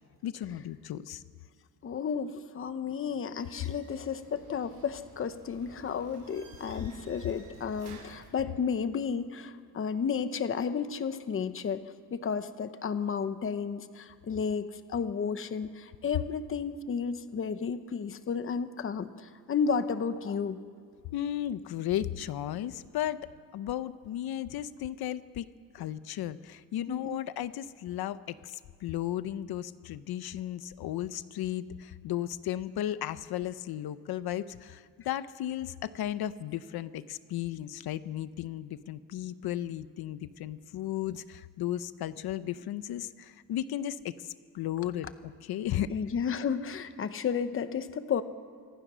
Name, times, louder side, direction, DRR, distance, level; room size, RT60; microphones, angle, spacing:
voice 1, 0.2-1.2 21.1-23.2 23.5-25.5 25.7-45.9, left 12 dB, 80° left, 13 dB, 0.8 m, -35 dB
voice 2, 1.8-11.8 12.1-20.6 26.9-27.2 45.9-48.2, left 6 dB, 35° left, 11 dB, 0.9 m, -32 dB
sound 1, 3.3-8.3, right 4 dB, 55° right, 5.9 m, -52 dB
26.5 x 25.0 x 6.3 m, 2.2 s
cardioid pair, 165°, 37 cm